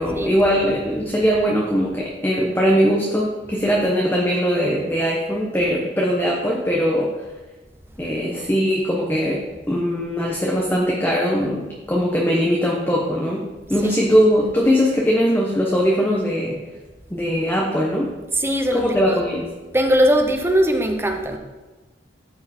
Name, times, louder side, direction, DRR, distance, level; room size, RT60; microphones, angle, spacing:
voice 1, 0.0-7.1 8.0-16.7 17.1-18.1 18.7-19.5, equal, 10° left, -3 dB, 1.0 m, -20 dB
voice 2, 13.7-14.2 18.3-19.2 19.7-21.4, equal, 15° right, 4 dB, 0.9 m, -20 dB
13.0 x 4.7 x 4.4 m, 1.2 s
head